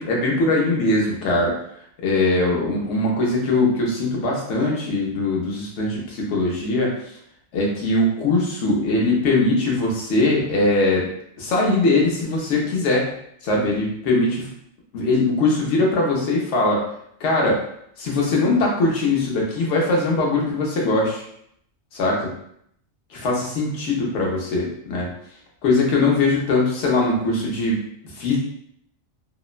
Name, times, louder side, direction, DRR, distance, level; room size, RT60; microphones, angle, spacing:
voice 1, 0.0-1.6 2.0-7.1 7.5-11.1 11.4-13.1 13.4-14.5 14.9-16.8 17.2-17.6 18.0-21.2 21.9-22.2 23.1-25.1 25.6-28.4, left 2 dB, 65° left, -2 dB, 1.0 m, -21 dB
2.9 x 2.0 x 2.4 m, 0.70 s
omnidirectional pair, 1.4 m